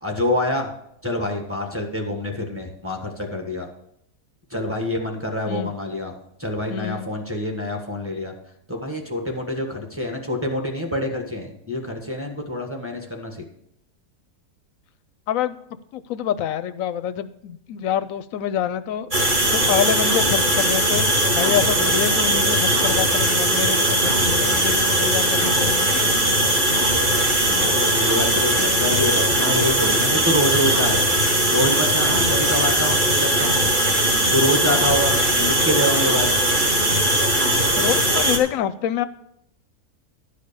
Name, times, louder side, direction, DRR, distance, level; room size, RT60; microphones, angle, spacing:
voice 1, 0.0-0.7 1.0-3.7 4.5-8.3 8.7-13.4 27.5-31.0 31.5-33.6 34.3-36.3, left 1 dB, 10° right, 1 dB, 1.4 m, -26 dB
voice 2, 6.7-7.1 15.3-15.6 15.9-19.1 19.5-26.1 37.8-39.0, left 9 dB, 70° left, 13 dB, 0.9 m, -26 dB
sound 1, 19.1-38.4, right 1 dB, 35° right, 1.6 m, -19 dB
12.0 x 5.1 x 6.8 m, 0.75 s
omnidirectional pair, 1.6 m